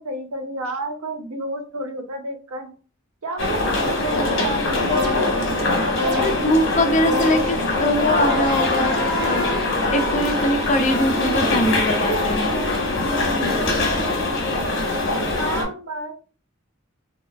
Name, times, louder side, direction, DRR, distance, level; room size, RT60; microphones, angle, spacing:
voice 1, 0.0-2.7 3.2-5.0 5.9-6.2 15.4-16.2, right 2 dB, 90° right, 4 dB, 0.7 m, -30 dB
sound 1, 3.4-15.6, left 2 dB, 60° left, 1.0 m, -22 dB
sound 2, 4.9-5.5 6.0-6.6 7.1-7.7 8.2-9.8, left 2 dB, 55° right, 1.1 m, -29 dB
voice 2, 6.2-9.5 9.9-12.5, left 1 dB, 35° left, 5 dB, 0.4 m, -22 dB
3.4 x 2.2 x 2.3 m, 0.37 s
head